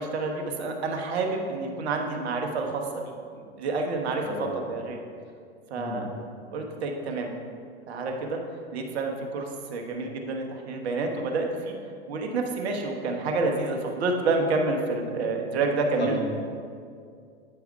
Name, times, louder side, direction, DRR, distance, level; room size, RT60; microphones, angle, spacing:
voice 1, 0.0-5.0 5.7-6.1 6.5-7.3 7.9-8.4 8.7-16.2, right 3 dB, 70° right, 3 dB, 1.1 m, -29 dB
voice 2, 4.2-4.6 5.8-6.1 16.0-16.2, left 2 dB, 80° left, -1 dB, 1.7 m, -33 dB
8.6 x 3.5 x 4.6 m, 2.2 s
hypercardioid pair, 105°, 33 cm